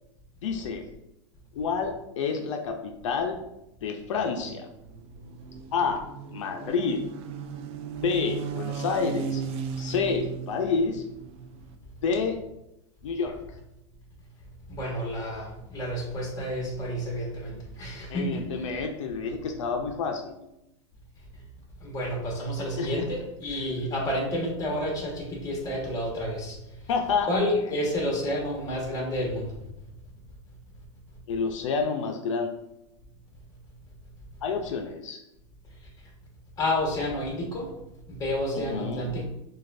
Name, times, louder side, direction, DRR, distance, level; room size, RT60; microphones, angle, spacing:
voice 1, 0.4-0.9 1.6-3.4 3.8-4.7 5.7-6.0 6.3-7.0 8.0-9.4 9.8-11.0 12.0-12.4 13.0-13.4 18.1-20.5 22.8-23.0 26.9-27.3 27.7-27.8 31.3-32.5 34.4-35.2 38.7-39.0, left 5 dB, 80° left, 4 dB, 0.5 m, -28 dB
sound 1, 4.1-11.8, right 6 dB, 40° right, 0.4 m, -37 dB
voice 2, 14.7-18.5 21.8-26.6 27.3-29.6 36.6-37.7 38.1-39.3, left 1 dB, 25° left, -1 dB, 1.4 m, -30 dB
6.2 x 2.3 x 2.5 m, 0.87 s
hypercardioid pair, 125°, 16 cm